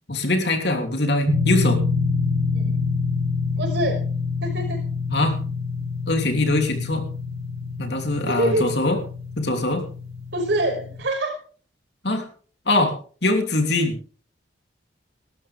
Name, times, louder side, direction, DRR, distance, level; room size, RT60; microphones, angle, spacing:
voice 1, 0.1-1.8 5.1-5.4 6.1-7.0 7.8-9.0 9.4-9.8 12.0-12.3 12.6-14.0, left 2 dB, 60° left, 4 dB, 3.1 m, -22 dB
sound 1, 1.3-11.0, left 4 dB, 30° right, 3.8 m, -26 dB
voice 2, 3.6-4.0 4.4-4.8 8.3-8.7 10.3-11.4, right 1 dB, 60° right, 3 dB, 5.4 m, -24 dB
20.0 x 13.0 x 3.5 m, 0.41 s
head